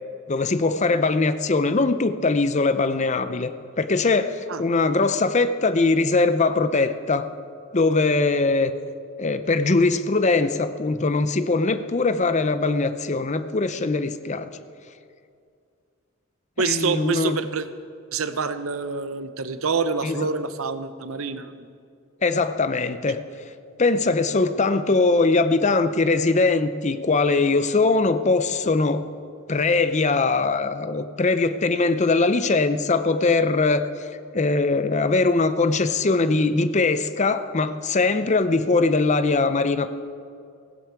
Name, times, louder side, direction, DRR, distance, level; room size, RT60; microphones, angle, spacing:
voice 1, 0.3-3.5 3.8-7.3 7.7-8.7 9.2-14.5 16.6-17.4 20.0-20.2 22.2-23.2 23.8-29.0 29.5-33.9 34.3-39.9, left 3 dB, 35° left, 11 dB, 0.6 m, -21 dB
voice 2, 16.6-17.7 18.1-21.7, right 4 dB, 85° right, 11 dB, 0.8 m, -27 dB
17.0 x 15.5 x 4.7 m, 2.3 s
head